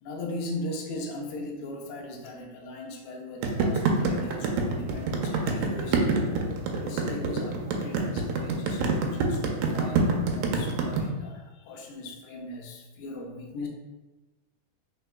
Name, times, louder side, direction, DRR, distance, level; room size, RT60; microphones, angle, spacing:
voice 1, 0.0-6.2 6.7-13.7, left 1 dB, 80° left, 1 dB, 1.7 m, -38 dB
sound 1, 3.4-11.0, right 4 dB, 90° right, 2.2 m, -26 dB
4.3 x 4.2 x 2.2 m, 1.1 s
omnidirectional pair, 3.8 m